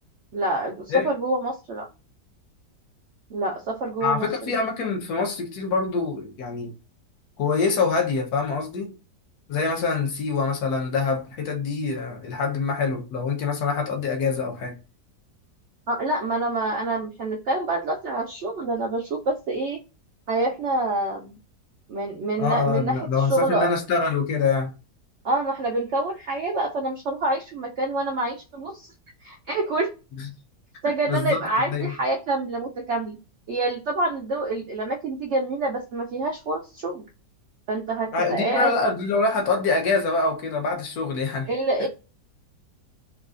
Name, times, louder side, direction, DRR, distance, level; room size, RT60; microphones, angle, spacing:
voice 1, 0.3-1.9 3.3-4.5 15.9-19.8 20.3-21.4 21.9-23.7 25.2-28.9 29.2-29.9 30.8-33.2 33.5-37.0 37.7-38.7 41.5-41.9, right 2 dB, 80° right, 0.6 m, -27 dB
voice 2, 4.0-6.7 7.4-8.9 9.5-14.7 22.4-24.7 30.2-30.3 31.1-31.9 38.1-41.5 41.8-41.9, left 4 dB, 65° left, 1.3 m, -25 dB
3.7 x 2.3 x 2.4 m
omnidirectional pair, 1.8 m